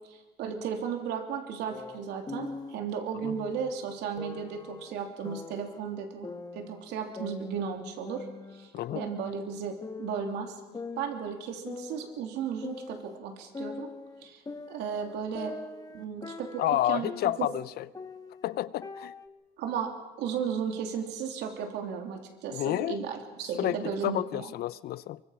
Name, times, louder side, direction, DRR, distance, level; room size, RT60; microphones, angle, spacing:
voice 1, 0.1-8.2 8.5-10.6 11.0-13.9 14.2-14.4 14.7-15.6 15.9-16.6 16.9-17.1 17.4-17.5 19.6-19.9 20.2-24.5, right 7 dB, 85° right, 3.1 m, -35 dB
sound 1, 1.7-2.7 3.2-3.7 4.2-5.8 6.2-7.8 8.1-9.6 9.8-10.3 10.7-13.2 13.5-17.6 17.9-19.3, left 4 dB, 20° left, 1.4 m, -42 dB
voice 2, 16.6-17.9 18.4-19.1 22.5-23.0 23.6-25.2, left 13 dB, 65° left, 0.7 m, -30 dB
24.5 x 23.5 x 5.8 m
cardioid pair, 110°, 17 cm